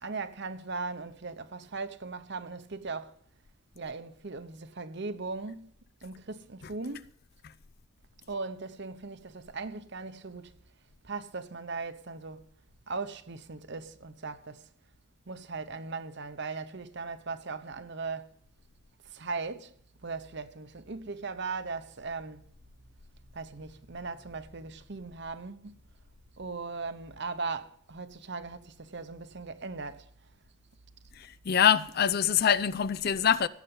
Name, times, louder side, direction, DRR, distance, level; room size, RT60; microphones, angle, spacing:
voice 1, 0.0-3.1 3.7-5.7 6.0-7.1 8.3-10.5 11.0-12.4 12.9-14.7 15.3-18.3 19.1-19.7 20.0-22.4 23.3-25.7 26.4-30.1, right 4 dB, 55° right, 0.9 m, -38 dB
voice 2, 31.2-33.5, left 8 dB, 45° left, 0.4 m, -25 dB
16.5 x 8.3 x 5.5 m
head